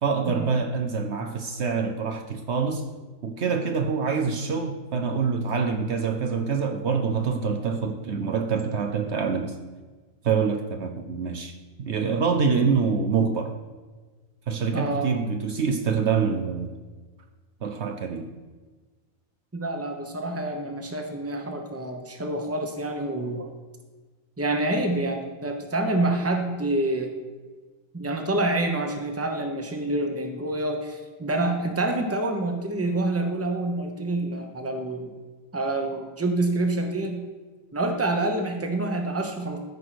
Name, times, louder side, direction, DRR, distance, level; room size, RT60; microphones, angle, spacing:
voice 1, 0.0-2.8 3.2-9.6 10.2-13.5 14.5-16.7 17.6-18.3, right 5 dB, 60° right, 5 dB, 1.0 m, -26 dB
voice 2, 14.7-15.2 19.5-23.5 24.4-27.1 27.9-35.1 35.5-37.2 37.7-39.6, right 2 dB, 10° right, 4 dB, 1.0 m, -27 dB
13.5 x 4.9 x 5.9 m, 1.3 s
omnidirectional pair, 1.4 m